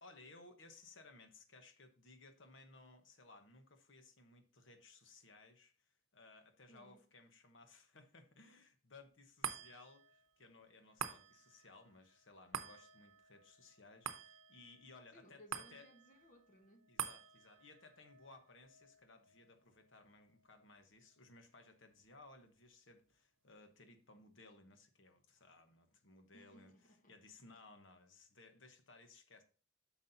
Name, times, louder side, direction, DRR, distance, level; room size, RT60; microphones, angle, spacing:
voice 1, 0.0-15.4 15.7-15.9 16.9-26.7 27.1-29.4, left 3 dB, 65° left, 1.1 m, -61 dB
voice 2, 6.7-7.0 15.1-16.9 26.3-27.2, equal, 40° left, 1.0 m, -63 dB
sound 1, 9.4-22.0 22.5-22.6, right 8 dB, 85° right, 0.7 m, -50 dB
9.5 x 6.2 x 2.7 m
head